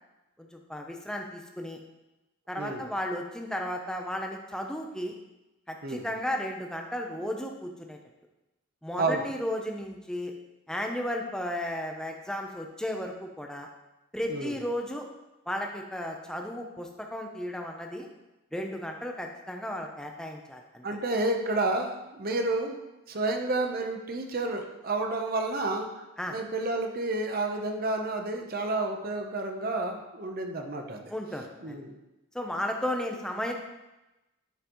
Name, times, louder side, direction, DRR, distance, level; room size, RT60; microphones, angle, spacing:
voice 1, 0.4-1.8 2.5-5.1 5.7-8.0 8.8-10.3 10.7-13.7 14.1-15.1 15.5-18.1 18.5-20.8 26.2-26.4 31.1-31.8 32.3-33.5, left 1 dB, 5° left, 2 dB, 0.7 m, -34 dB
voice 2, 20.8-22.8 23.1-31.1 31.6-32.0, right 2 dB, 45° right, 4 dB, 0.8 m, -30 dB
10.0 x 5.7 x 3.1 m, 1.0 s
head